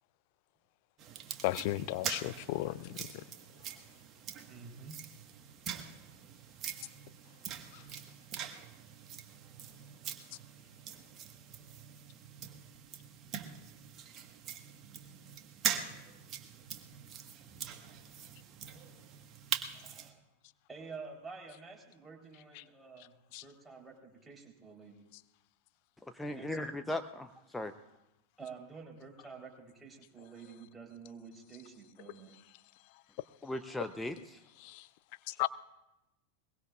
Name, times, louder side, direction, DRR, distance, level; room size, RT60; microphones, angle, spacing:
sound 1, 1.0-20.1, right 8 dB, 30° right, 1.6 m, -43 dB
voice 1, 1.4-3.1 7.7-7.8 23.3-23.4 34.6-34.9 35.3-35.5, left 18 dB, 45° left, 0.6 m, -34 dB
voice 2, 4.5-5.0 19.7-20.2 20.7-23.1 23.4-25.0 26.3-26.7 28.4-32.4, right 5 dB, 10° right, 4.1 m, -49 dB
voice 3, 26.1-27.7 33.4-34.2, left 1 dB, 5° left, 0.8 m, -37 dB
22.5 x 22.0 x 2.5 m
figure-of-eight pair, 90°, 0 cm